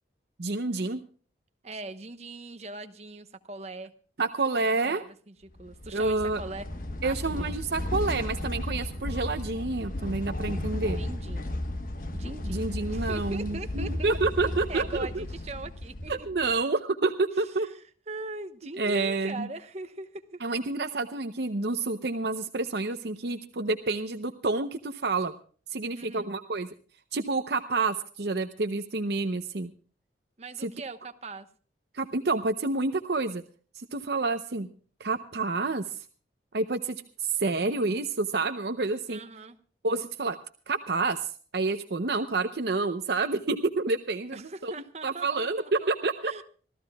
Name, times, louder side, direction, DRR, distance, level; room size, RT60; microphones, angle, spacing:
voice 1, 0.4-1.0 4.2-5.0 5.9-6.4 7.0-11.0 12.4-15.2 16.1-17.7 18.8-19.5 20.4-25.3 25.7-26.7 27.1-29.7 30.6-30.7 31.9-33.4 33.7-34.7 35.0-36.1 36.5-39.2 39.8-40.4 40.7-44.4 44.6-44.7 45.0-46.4, right 3 dB, 65° right, 8 dB, 0.7 m, -29 dB
voice 2, 1.6-3.9 4.8-6.7 7.0-7.5 11.0-11.5 12.1-16.3 17.4-20.4 25.9-26.3 30.4-31.5 39.1-39.6 44.3-45.9 46.2-46.4, right 3 dB, 35° right, 9 dB, 1.0 m, -41 dB
sound 1, 5.6-16.6, left 1 dB, 50° left, 1.3 m, -34 dB
26.0 x 14.5 x 2.3 m, 0.42 s
head